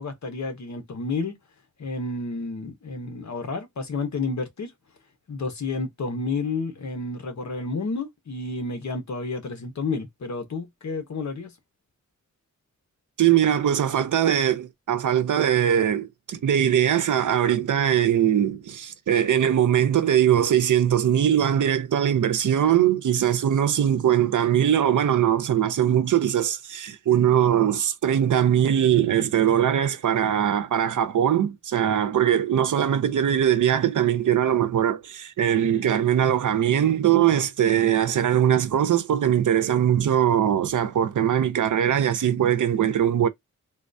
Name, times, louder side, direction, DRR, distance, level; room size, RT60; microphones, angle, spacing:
voice 1, 0.0-1.4 1.8-4.7 5.3-11.5, left 3 dB, 65° left, 1.0 m, -30 dB
voice 2, 13.2-43.3, right 10 dB, 80° right, 0.6 m, -21 dB
3.7 x 2.3 x 2.6 m
wide cardioid pair, 115°, 30 cm